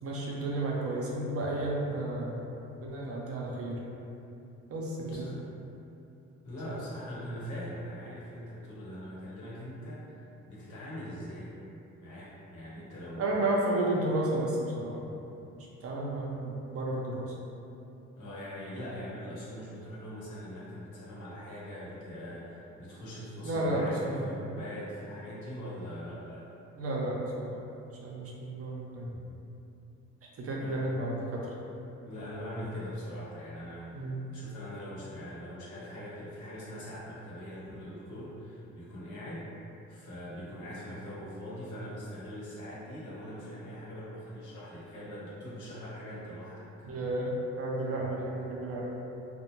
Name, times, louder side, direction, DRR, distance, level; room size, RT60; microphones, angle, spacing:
voice 1, 0.0-2.5 2.8-3.8 4.7-5.3 6.6-6.8 13.2-15.0 15.8-17.3 23.4-24.3 26.8-27.5 27.9-29.2 30.4-31.5 33.9-34.2 46.8-48.8, right 1 dB, 50° right, -3 dB, 0.6 m, -32 dB
voice 2, 5.1-5.4 6.4-11.6 12.0-13.5 18.2-26.5 30.6-30.9 32.0-39.5 39.9-46.7, equal, 75° left, -7 dB, 0.9 m, -42 dB
2.5 x 2.1 x 2.9 m, 2.8 s
cardioid pair, 90°, 30 cm